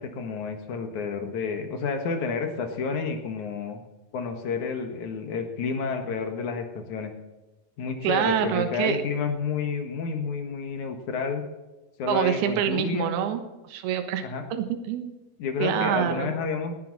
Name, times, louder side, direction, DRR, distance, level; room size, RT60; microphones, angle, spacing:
voice 1, 0.0-3.8 4.1-7.1 7.8-11.5 12.0-13.1 14.2-14.4 15.4-16.7, left 5 dB, 60° left, 6 dB, 2.4 m, -30 dB
voice 2, 8.0-9.0 12.1-14.2 14.5-15.1 15.6-16.3, right 9 dB, 70° right, 8 dB, 3.1 m, -26 dB
18.5 x 11.5 x 4.1 m, 1.1 s
omnidirectional pair, 4.8 m